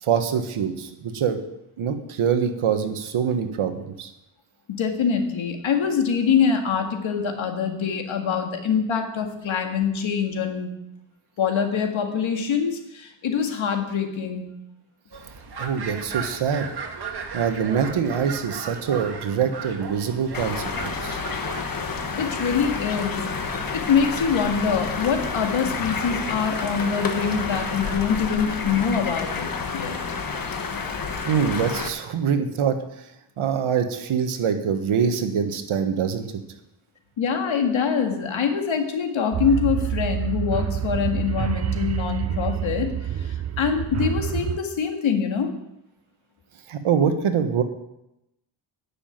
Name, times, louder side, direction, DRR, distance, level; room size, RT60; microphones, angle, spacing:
voice 1, 0.0-1.4 1.8-4.1 15.6-16.7 17.3-21.2 31.2-32.8 33.4-36.3 46.7-47.6, right 7 dB, 75° right, 7 dB, 1.4 m, -24 dB
voice 2, 4.7-10.8 11.4-14.4 22.2-23.2 23.7-30.2 37.2-45.5, left 6 dB, 70° left, 4 dB, 1.9 m, -24 dB
sound 1, 15.1-28.0, right 5 dB, 50° right, 1.7 m, -38 dB
sound 2, 20.3-31.9, left 5 dB, 45° left, 1.4 m, -29 dB
sound 3, 39.3-44.6, right 10 dB, 35° right, 0.5 m, -27 dB
10.0 x 7.1 x 9.1 m, 0.87 s
wide cardioid pair, 115°, 49 cm